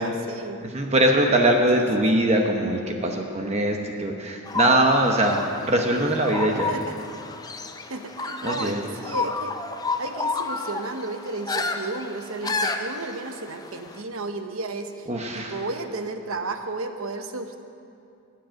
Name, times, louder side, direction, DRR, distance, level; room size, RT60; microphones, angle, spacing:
voice 1, 0.0-0.6 1.7-1.8 6.7-7.2 7.9-9.5 10.0-15.1 15.3-17.6, right 3 dB, 65° right, 7 dB, 1.0 m, -33 dB
voice 2, 0.6-6.7 8.4-8.8 15.1-15.6, right 1 dB, 30° right, 2 dB, 0.9 m, -22 dB
sound 1, 4.5-14.0, left 3 dB, 15° left, 0.5 m, -31 dB
21.0 x 7.8 x 6.4 m, 2.5 s
head